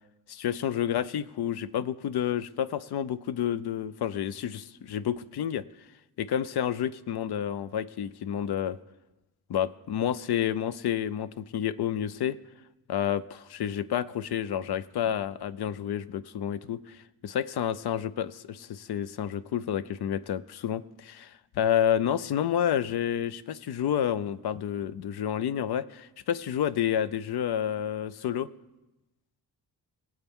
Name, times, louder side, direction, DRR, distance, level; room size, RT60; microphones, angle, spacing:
voice 1, 0.3-5.6 6.2-8.8 9.5-12.4 12.9-28.5, left 9 dB, 80° left, 16 dB, 0.6 m, -29 dB
22.5 x 8.0 x 3.6 m, 1.0 s
wide cardioid pair, 105°, 39 cm